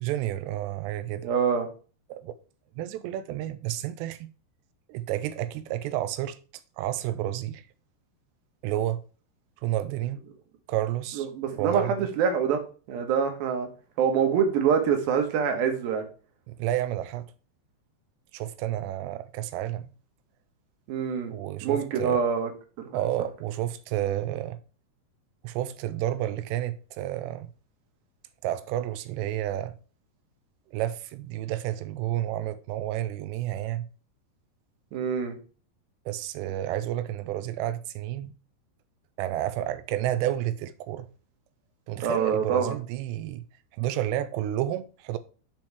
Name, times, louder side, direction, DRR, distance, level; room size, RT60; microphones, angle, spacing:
voice 1, 0.0-1.3 2.1-2.3 2.8-4.3 4.9-6.4 6.8-7.6 8.6-9.0 9.6-10.2 10.7-11.3 11.6-12.1 16.5-17.3 18.3-19.9 21.3-22.3 22.9-24.6 25.4-27.5 28.4-29.7 30.7-33.9 36.1-38.3 39.2-41.1 41.9-43.4 43.7-45.2, right 13 dB, 85° right, 2.8 m, -30 dB
voice 2, 1.2-1.7 11.2-12.6 12.9-13.7 14.0-16.1 20.9-21.3 21.6-22.5 22.8-23.0 34.9-35.4 42.0-42.7, right 7 dB, 70° right, 2.8 m, -25 dB
7.4 x 4.5 x 4.7 m
omnidirectional pair, 4.9 m